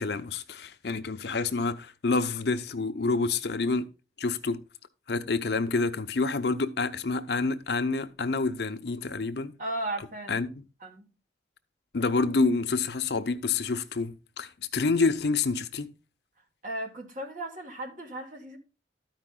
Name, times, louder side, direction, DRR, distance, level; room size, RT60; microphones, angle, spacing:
voice 1, 0.0-3.9 4.2-4.6 5.1-9.5 10.3-10.5 11.9-15.9, left 3 dB, 65° left, 0.6 m, -28 dB
voice 2, 9.6-10.4 10.8-11.1 16.6-18.6, right 1 dB, 45° right, 1.6 m, -36 dB
12.5 x 5.2 x 3.7 m
head